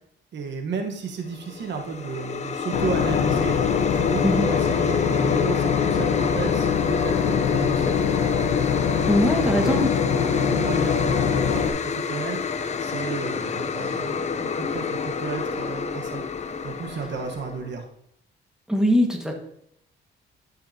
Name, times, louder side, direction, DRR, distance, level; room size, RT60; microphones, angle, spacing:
voice 1, 0.3-8.4 9.3-12.4 12.8-16.2 16.6-17.8, right 5 dB, 65° right, 2 dB, 1.3 m, -33 dB
sound 1, 1.3-17.7, left 5 dB, 35° left, 0.6 m, -29 dB
Boat Water vehicle / Engine, 2.7-11.7, left 7 dB, 75° left, 1.0 m, -23 dB
voice 2, 9.1-9.9 18.7-19.3, equal, 5° right, 1 dB, 1.7 m, -21 dB
11.5 x 5.6 x 2.8 m, 0.72 s
cardioid pair, 90°, 20 cm